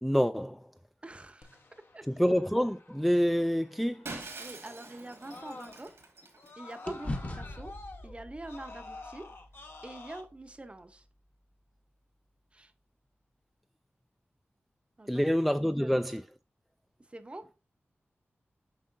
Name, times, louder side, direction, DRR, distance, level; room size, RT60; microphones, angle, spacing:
voice 1, 0.0-0.6 2.1-4.0 15.1-16.2, equal, ahead, 0.3 m, -27 dB
voice 2, 1.0-1.6 1.9-2.1 4.4-5.9 6.6-7.8 8.0-9.3 9.8-11.0 12.5-12.7 15.0-15.3 15.8-15.9 17.1-17.5, right 2 dB, 25° right, 0.7 m, -45 dB
Screaming, 1.4-6.0 6.4-10.2, left 3 dB, 60° left, 1.0 m, -50 dB
Shatter, 4.1-6.7, right 3 dB, 85° right, 1.8 m, -45 dB
sound 1, 4.3-6.5 6.9-11.1, left 1 dB, 35° left, 1.0 m, -43 dB
7.4 x 5.4 x 2.6 m
wide cardioid pair, 85°, 4 cm